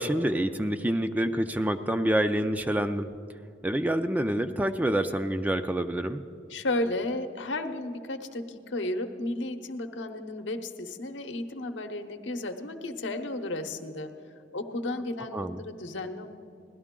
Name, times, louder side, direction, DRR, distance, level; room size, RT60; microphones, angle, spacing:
voice 1, 0.0-3.1 3.6-6.2 15.3-15.6, right 1 dB, 10° right, 8 dB, 0.3 m, -27 dB
voice 2, 6.5-14.1 14.5-16.3, left 2 dB, 75° left, 7 dB, 0.8 m, -33 dB
17.0 x 12.0 x 3.7 m, 2.6 s
head